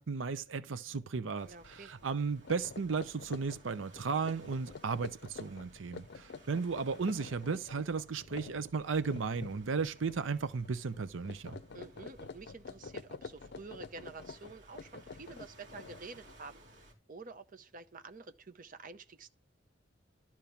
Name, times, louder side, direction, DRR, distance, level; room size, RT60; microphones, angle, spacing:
voice 1, 0.0-11.6, right 5 dB, 80° right, 0.6 m, -35 dB
sound 1, 0.9-1.3 1.6-1.8 2.3-10.4 10.6-11.0 11.2-16.3, left 4 dB, 60° left, 0.6 m, -48 dB
sound 2, 1.4-16.9, right 1 dB, 60° right, 3.3 m, -59 dB
voice 2, 1.5-1.9 11.7-19.3, right 4 dB, 45° right, 0.8 m, -49 dB
12.0 x 4.5 x 7.1 m
head